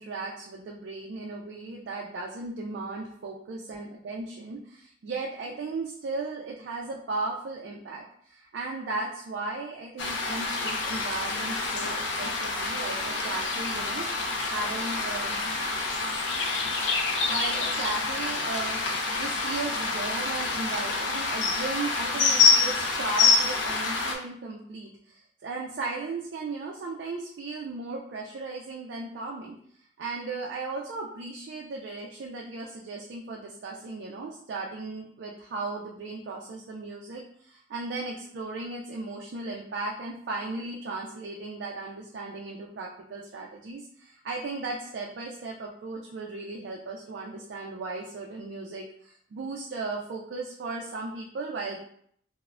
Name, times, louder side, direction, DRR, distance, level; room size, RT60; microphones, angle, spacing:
voice 1, 0.0-14.1 14.5-15.4 17.3-18.8 19.1-29.6 30.0-51.8, right 3 dB, 65° right, -1 dB, 0.3 m, -36 dB
sound 1, 10.0-24.2, left 4 dB, 75° left, 0.4 m, -27 dB
3.1 x 2.0 x 2.4 m, 0.64 s
head